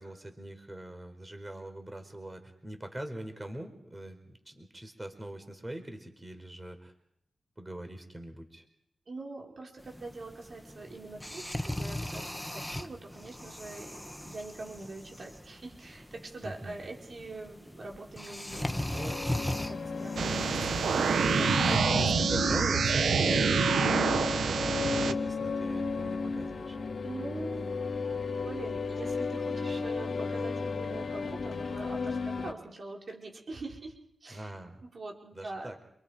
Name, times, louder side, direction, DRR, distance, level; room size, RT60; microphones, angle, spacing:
voice 1, 0.0-6.9 7.6-8.6 16.4-16.7 21.6-26.8 34.3-34.8 35.3-35.8, right 1 dB, 20° right, 6 dB, 4.8 m, -42 dB
voice 2, 9.1-22.2 27.0-33.9 34.2-34.6 34.8-35.8, right 2 dB, 60° right, -1 dB, 5.2 m, -43 dB
sound 1, 9.8-21.8, left 1 dB, 5° left, 1.6 m, -39 dB
sound 2, 18.5-32.5, left 4 dB, 60° left, 3.0 m, -34 dB
sound 3, 20.2-25.1, right 6 dB, 80° right, 1.0 m, -27 dB
28.5 x 24.0 x 5.2 m, 0.77 s
supercardioid pair, 40°, 0 cm